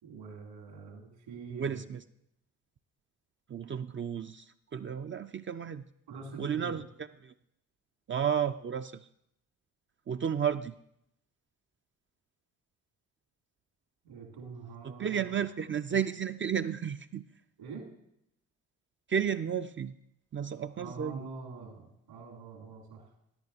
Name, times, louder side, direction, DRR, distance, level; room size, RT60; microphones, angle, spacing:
voice 1, 0.0-1.8 6.1-6.8 14.0-15.4 17.6-17.9 20.7-23.1, right 4 dB, 75° right, 1 dB, 2.8 m, -45 dB
voice 2, 1.5-2.0 3.5-5.8 6.4-6.8 7.2-7.3 8.1-9.1 10.1-10.7 14.8-17.2 19.1-19.9 20.3-21.3, right 8 dB, 30° right, 9 dB, 0.4 m, -32 dB
13.5 x 10.5 x 2.8 m, 0.76 s
hypercardioid pair, 45°, 43 cm